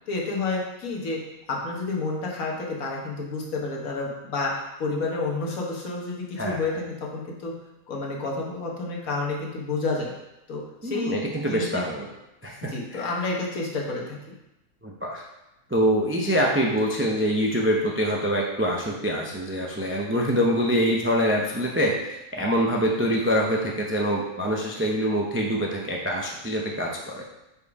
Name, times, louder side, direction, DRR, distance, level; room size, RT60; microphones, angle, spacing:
voice 1, 0.1-1.2 1.5-7.5 7.9-10.1 10.5-11.8 12.7-14.2, left 3 dB, 65° left, -2 dB, 1.6 m, -30 dB
voice 2, 10.8-12.1 12.4-13.1 14.8-15.3 15.7-22.0 22.3-27.2, equal, 15° right, -1 dB, 0.4 m, -25 dB
5.6 x 4.7 x 4.8 m, 0.93 s
omnidirectional pair, 1.6 m